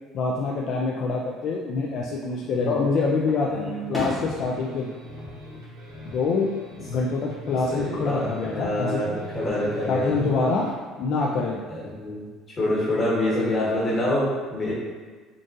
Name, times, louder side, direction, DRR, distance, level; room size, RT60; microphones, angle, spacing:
voice 1, 0.1-4.9 6.1-6.5 6.9-9.0 9.9-10.7 11.0-11.6, left 4 dB, 50° left, -3 dB, 0.3 m, -25 dB
Fireworks, 2.1-2.8 3.3-6.4 6.7-7.3 8.8-9.6, left 1 dB, 5° left, 0.9 m, -37 dB
voice 2, 3.5-3.9 7.4-10.3 11.7-12.2 12.6-14.7, left 1 dB, 30° left, -7 dB, 1.3 m, -26 dB
sound 1, 4.0-10.8, left 1 dB, 70° right, 1.0 m, -41 dB
3.8 x 2.4 x 2.6 m, 1.4 s
cardioid pair, 135°, 0 cm